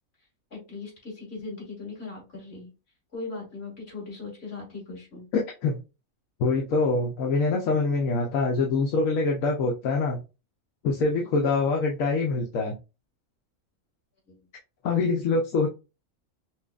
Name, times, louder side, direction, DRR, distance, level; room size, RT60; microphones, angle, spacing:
voice 1, 0.5-2.7 3.1-5.3 11.2-11.3 14.3-14.4, left 3 dB, 50° left, -3 dB, 2.4 m, -39 dB
voice 2, 5.3-5.8 6.4-10.2 10.8-12.8 14.8-15.7, left 3 dB, 75° left, 0 dB, 1.1 m, -24 dB
5.8 x 2.3 x 2.4 m, 0.29 s
omnidirectional pair, 1.4 m